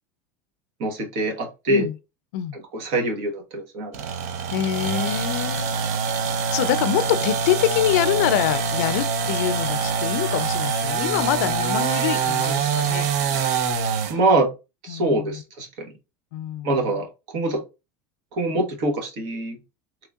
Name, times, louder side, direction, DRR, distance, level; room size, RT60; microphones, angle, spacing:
voice 1, 0.8-1.9 2.7-3.9 14.1-14.5 14.8-15.9 16.6-17.6 18.3-19.6, right 2 dB, 55° right, 1.2 m, -24 dB
sound 1, 3.9-14.2, right 6 dB, 90° right, 0.6 m, -25 dB
voice 2, 4.5-5.7 6.5-13.1 14.9-15.4 16.3-17.0, left 12 dB, 80° left, 0.4 m, -25 dB
3.7 x 3.1 x 2.3 m
supercardioid pair, 160°, 8 cm